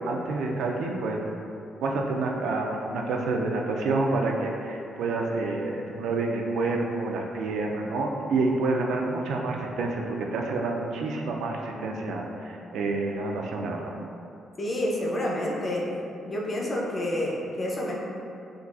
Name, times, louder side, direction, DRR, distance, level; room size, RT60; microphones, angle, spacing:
voice 1, 0.1-1.2 1.8-13.9, right 3 dB, 80° right, 0 dB, 0.3 m, -28 dB
voice 2, 14.6-15.9 16.2-17.9, left 1 dB, 25° left, -3 dB, 0.4 m, -28 dB
3.7 x 2.3 x 2.4 m, 2.7 s
cardioid pair, 170°, 0 cm